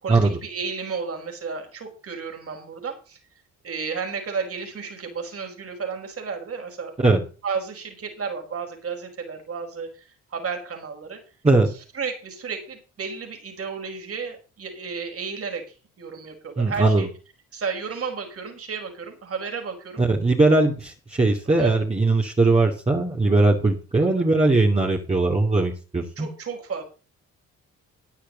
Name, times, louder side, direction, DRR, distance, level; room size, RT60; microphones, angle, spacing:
voice 1, 0.0-3.2 3.6-6.9 7.4-11.2 11.9-15.6 16.0-17.1 17.5-20.0 21.6-21.8 24.0-24.2 26.2-26.8, right 5 dB, 50° right, 3 dB, 5.4 m, -32 dB
voice 2, 16.6-17.1 20.0-26.3, right 2 dB, 20° right, -1 dB, 2.7 m, -20 dB
13.5 x 10.5 x 4.1 m, 0.35 s
cardioid pair, 90°, 30 cm